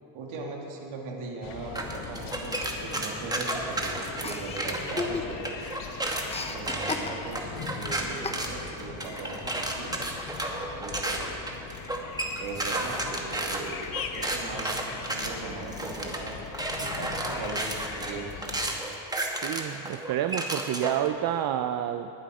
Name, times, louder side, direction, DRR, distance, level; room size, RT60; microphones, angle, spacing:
voice 1, 0.1-5.4 6.5-10.0 10.7-11.5 12.4-13.8 14.1-18.3, right 3 dB, 85° right, 0 dB, 2.3 m, -39 dB
sound 1, 1.4-18.8, left 6 dB, 80° left, 1.1 m, -41 dB
sound 2, 1.8-5.0 5.4-21.1, right 1 dB, 10° right, 1.1 m, -32 dB
Chuckle chortle, 4.2-5.6 5.9-7.5 8.2-8.8, left 4 dB, 15° left, 0.6 m, -35 dB
voice 2, 19.4-22.1, right 11 dB, 50° right, 9 dB, 0.5 m, -29 dB
20.5 x 7.7 x 4.9 m, 2.8 s
cardioid pair, 130°, 47 cm